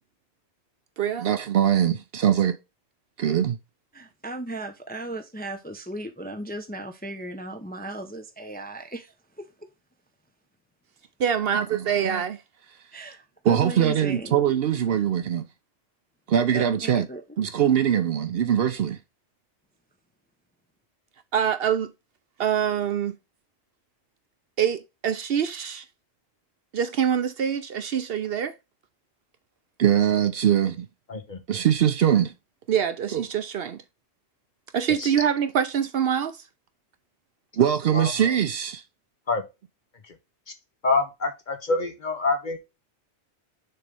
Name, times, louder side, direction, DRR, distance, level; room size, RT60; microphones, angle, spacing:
voice 1, 1.0-2.6 3.2-3.6 11.2-12.4 13.4-15.5 16.3-17.1 17.4-19.0 21.3-21.9 22.4-23.1 24.6-25.8 26.7-28.5 29.8-30.9 31.5-32.3 32.7-33.8 34.7-36.4 37.6-38.8, right 9 dB, 60° right, 0.8 m, -23 dB
voice 2, 3.9-9.1 12.9-14.4 16.5-17.2, right 2 dB, 10° left, 0.6 m, -36 dB
voice 3, 40.8-42.6, left 3 dB, 45° left, 1.2 m, -26 dB
6.6 x 3.2 x 5.2 m
omnidirectional pair, 1.2 m